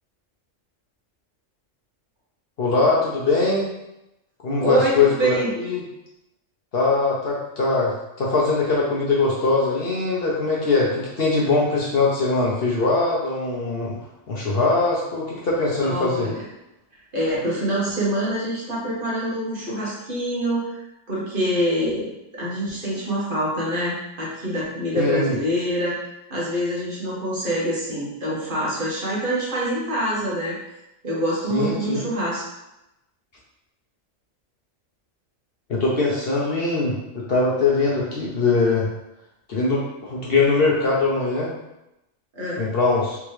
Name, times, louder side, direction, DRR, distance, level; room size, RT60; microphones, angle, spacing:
voice 1, 2.6-3.7 4.4-5.8 6.7-13.9 14.3-16.3 24.9-25.3 31.5-32.1 35.7-38.9 39.5-41.5 42.6-43.2, left 3 dB, 55° left, -4 dB, 0.8 m, -21 dB
voice 2, 4.6-5.5 15.8-16.4 17.1-20.8 21.1-26.0 26.3-30.6 31.0-32.4 42.3-42.6, right 1 dB, 45° right, -6 dB, 1.2 m, -25 dB
3.5 x 2.9 x 3.2 m, 0.92 s
omnidirectional pair, 1.3 m